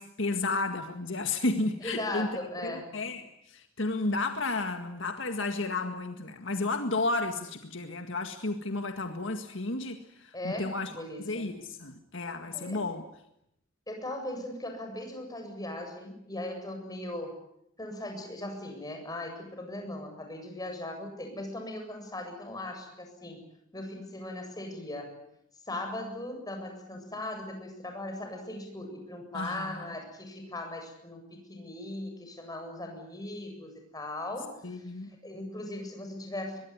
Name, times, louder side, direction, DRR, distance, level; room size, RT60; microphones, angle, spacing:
voice 1, 0.0-2.3 2.6-10.9 11.3-13.0 29.3-29.8 34.6-35.1, left 2 dB, 65° left, 6 dB, 1.9 m, -32 dB
voice 2, 1.8-2.9 10.3-11.5 12.5-12.8 13.9-17.4 17.8-23.4 23.7-25.1 25.7-36.6, left 1 dB, 20° left, 4 dB, 7.7 m, -39 dB
23.5 x 22.0 x 9.7 m, 0.77 s
head